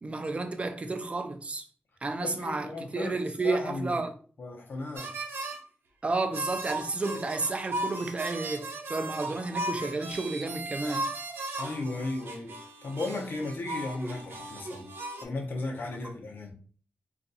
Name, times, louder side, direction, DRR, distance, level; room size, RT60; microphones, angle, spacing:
voice 1, 0.0-1.6 2.0-4.1 6.0-11.1, right 3 dB, 35° right, 0.5 m, -31 dB
voice 2, 2.2-3.2 3.4-4.0 4.4-5.1 11.6-14.9 15.2-16.5, left 2 dB, 65° left, 0.8 m, -35 dB
sound 1, 4.9-5.6 6.3-15.2, right 2 dB, 90° right, 0.6 m, -37 dB
2.5 x 2.3 x 4.0 m
wide cardioid pair, 95°, 4 cm